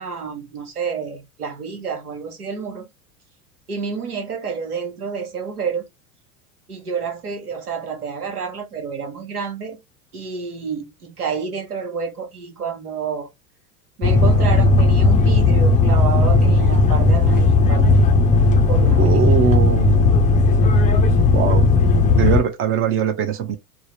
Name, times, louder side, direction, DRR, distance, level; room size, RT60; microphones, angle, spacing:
voice 1, 0.0-2.9 3.7-5.9 6.7-9.8 10.1-13.3 14.0-18.0 18.7-19.4, right 5 dB, 80° right, 1.1 m, -29 dB
sound 1, 14.0-22.4, left 3 dB, 15° left, 0.5 m, -15 dB
voice 2, 19.0-20.4 21.3-21.7 22.1-23.6, right 7 dB, 30° right, 0.6 m, -22 dB
3.6 x 2.0 x 3.1 m
figure-of-eight pair, 80°, 45 cm